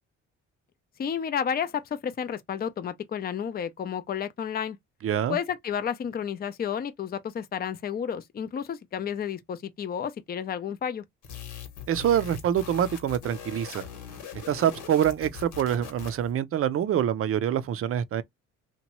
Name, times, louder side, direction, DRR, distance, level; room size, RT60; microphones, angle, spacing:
voice 1, 1.0-4.8 5.3-11.0, left 8 dB, 30° left, 0.5 m, -31 dB
voice 2, 5.0-5.4 11.9-13.9 14.5-18.2, right 10 dB, 50° right, 0.4 m, -25 dB
sound 1, 11.2-16.3, left 8 dB, 75° left, 1.1 m, -41 dB
2.9 x 2.2 x 2.9 m
cardioid pair, 90°, 30 cm